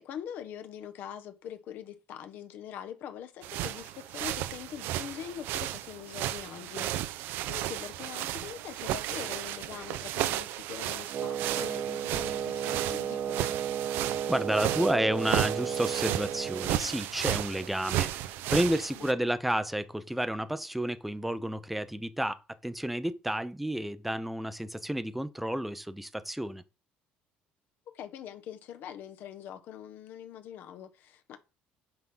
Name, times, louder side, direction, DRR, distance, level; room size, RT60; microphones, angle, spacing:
voice 1, 0.0-13.5 18.9-19.3 27.9-31.4, left 9 dB, 60° left, 1.4 m, -43 dB
sound 1, 3.4-19.1, right 13 dB, 80° right, 0.7 m, -34 dB
Wind instrument woodwind instrument, 11.1-16.8, right 8 dB, 40° right, 1.0 m, -33 dB
voice 2, 14.3-26.6, right 1 dB, 5° right, 0.7 m, -31 dB
9.3 x 3.8 x 6.1 m
cardioid pair, 135°, 4 cm